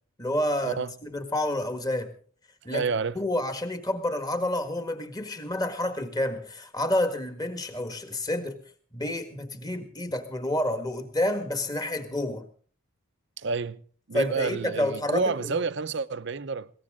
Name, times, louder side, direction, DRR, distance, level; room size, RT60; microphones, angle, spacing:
voice 1, 0.2-2.1 2.6-2.8 3.1-8.6 8.9-12.5 14.1-15.6, left 1 dB, 20° left, 1.7 m, -29 dB
voice 2, 2.7-3.2 13.4-13.8 14.1-16.7, right 4 dB, 60° right, 0.7 m, -29 dB
21.5 x 17.5 x 3.7 m
head